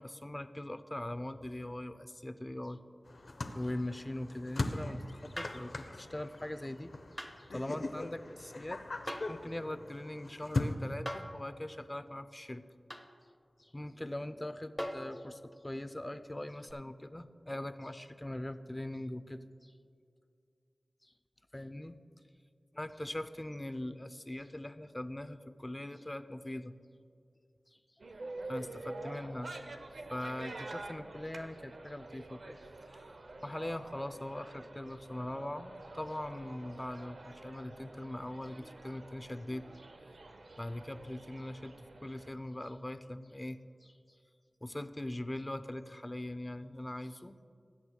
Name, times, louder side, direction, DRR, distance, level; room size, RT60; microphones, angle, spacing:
voice 1, 0.0-2.8 3.5-12.7 13.6-19.7 21.0-21.1 21.5-22.0 22.7-26.7 27.7-27.8 28.5-29.5 30.1-33.0 33.4-39.9 40.6-44.2 44.6-47.4, left 1 dB, 25° left, 11 dB, 0.5 m, -41 dB
sound 1, 3.0-10.7, left 2 dB, 70° left, 0.7 m, -40 dB
sound 2, 5.4-5.7 7.2-7.4 9.1-9.4 11.1-11.4 12.9-13.1 14.8-15.1 16.7-16.8, equal, ahead, 0.9 m, -40 dB
sound 3, 28.0-42.3, right 2 dB, 80° right, 0.7 m, -47 dB
19.5 x 8.4 x 2.3 m, 2.3 s
cardioid pair, 40°, 0 cm